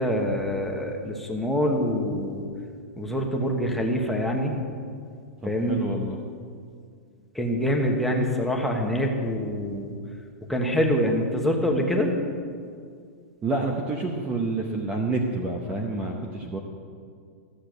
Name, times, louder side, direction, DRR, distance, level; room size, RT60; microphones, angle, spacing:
voice 1, 0.0-2.4 3.0-4.6 5.4-5.8 7.3-10.0 10.5-12.1, equal, ahead, 0 dB, 1.1 m, -25 dB
voice 2, 5.4-6.2 13.4-16.6, right 2 dB, 15° right, 2 dB, 0.8 m, -28 dB
14.0 x 6.8 x 7.8 m, 2.2 s
supercardioid pair, 160°, 8 cm